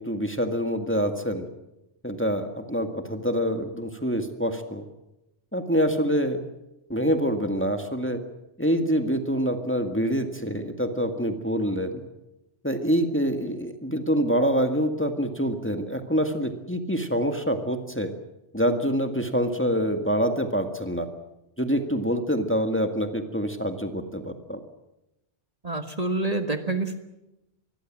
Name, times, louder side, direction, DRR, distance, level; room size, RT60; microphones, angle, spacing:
voice 1, 0.0-1.5 2.0-4.8 5.5-6.4 6.9-8.2 8.6-12.0 12.6-18.1 18.5-21.1 21.6-24.6, equal, 10° left, 6 dB, 1.9 m, -26 dB
voice 2, 25.6-27.0, right 2 dB, 35° right, 6 dB, 1.8 m, -27 dB
25.5 x 21.5 x 7.5 m, 0.91 s
omnidirectional pair, 1.2 m